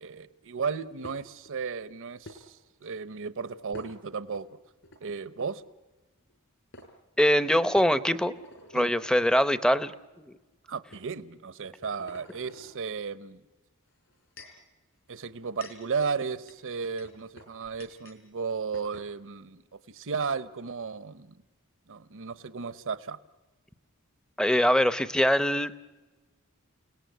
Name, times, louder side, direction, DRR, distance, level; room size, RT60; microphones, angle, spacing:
voice 1, 0.0-4.5 5.0-5.6 8.7-8.9 10.7-13.4 15.1-19.6 19.9-21.4 21.9-23.2, right 5 dB, 65° right, 14 dB, 0.9 m, -34 dB
sound 1, 1.0-1.5 2.2-2.4 3.7-4.4 4.8-5.0 6.3-6.4 6.7-6.9 7.7-9.3 10.1-10.3 10.9-11.1 11.6-12.8 13.9-14.6 15.3-18.2 18.5-18.6 18.7-19.1, left 1 dB, 60° left, 4.5 m, -49 dB
voice 2, 7.2-8.3 8.7-9.9 10.3-10.4 24.4-25.7, equal, 5° left, 13 dB, 0.7 m, -23 dB
29.5 x 18.5 x 9.3 m, 1.2 s
head